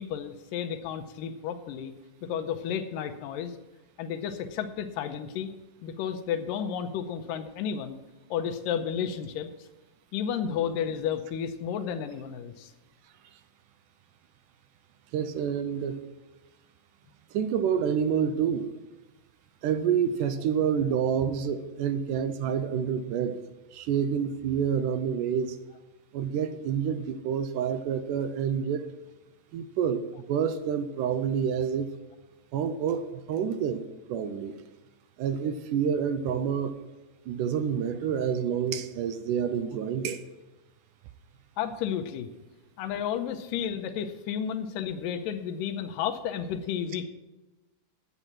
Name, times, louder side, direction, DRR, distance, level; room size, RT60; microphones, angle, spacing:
voice 1, 0.0-1.9 2.2-3.6 4.0-5.5 5.8-8.0 8.3-9.5 10.1-12.7 41.6-42.3 42.8-47.0, left 8 dB, 90° left, 8 dB, 2.4 m, -32 dB
voice 2, 15.1-16.0 17.3-18.7 19.6-23.4 23.7-25.6 26.1-28.9 29.5-31.9 32.5-33.8 34.1-34.5 35.2-36.8 37.3-40.2, right 7 dB, 80° right, 11 dB, 2.1 m, -28 dB
9.8 x 8.1 x 5.9 m, 1.1 s
omnidirectional pair, 3.9 m